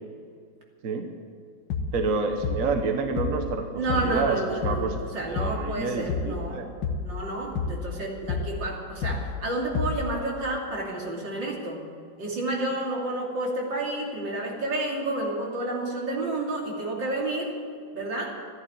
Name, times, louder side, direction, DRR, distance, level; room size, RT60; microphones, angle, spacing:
sound 1, 1.7-2.1 2.4-2.8 3.2-3.5 3.9-4.3 4.6-5.0 5.4-5.7 6.1-6.5 6.8-7.2 7.5-7.9 8.3-8.7 9.0-9.4 9.7-10.2, left 5 dB, 75° left, 1.6 m, -30 dB
voice 1, 1.9-5.0 5.3-6.6, right 4 dB, 50° right, 5 dB, 1.3 m, -28 dB
voice 2, 3.8-6.6 7.0-11.8 12.2-17.5 17.9-18.4, right 2 dB, 70° right, -2 dB, 3.5 m, -30 dB
14.0 x 11.0 x 8.7 m, 2.2 s
omnidirectional pair, 2.1 m